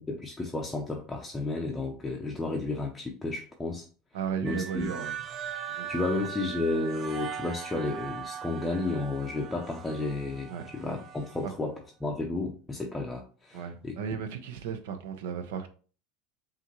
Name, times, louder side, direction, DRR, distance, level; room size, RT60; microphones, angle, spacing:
voice 1, 0.0-3.9 4.4-4.9 5.9-14.2, left 2 dB, 10° left, 0.5 m, -32 dB
voice 2, 4.1-5.2 5.7-6.1 10.5-10.6 11.4-11.5 13.5-15.7, right 7 dB, 80° right, 0.7 m, -35 dB
sound 1, 4.4-11.5, right 8 dB, 40° right, 0.5 m, -40 dB
5.5 x 2.5 x 3.0 m
supercardioid pair, 125°, 0 cm